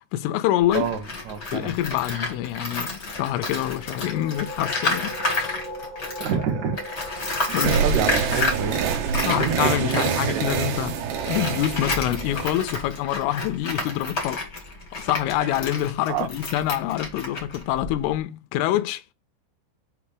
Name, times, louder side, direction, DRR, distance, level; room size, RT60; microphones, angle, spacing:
voice 1, 0.1-0.9 1.5-5.6 7.5-7.8 9.2-14.5 14.9-19.1, left 13 dB, 85° left, 3.0 m, -26 dB
Tools, 0.6-6.4 6.7-18.2, left 3 dB, 65° left, 0.9 m, -31 dB
voice 2, 0.7-1.7 6.2-6.8 7.5-9.1 9.3-9.9 10.2-10.5 16.1-16.3, right 6 dB, 90° right, 1.6 m, -28 dB
sound 1, 3.7-13.1, left 1 dB, 45° right, 0.9 m, -41 dB
sound 2, 7.6-12.9, right 7 dB, 70° right, 2.8 m, -26 dB
8.2 x 2.9 x 4.9 m
omnidirectional pair, 5.7 m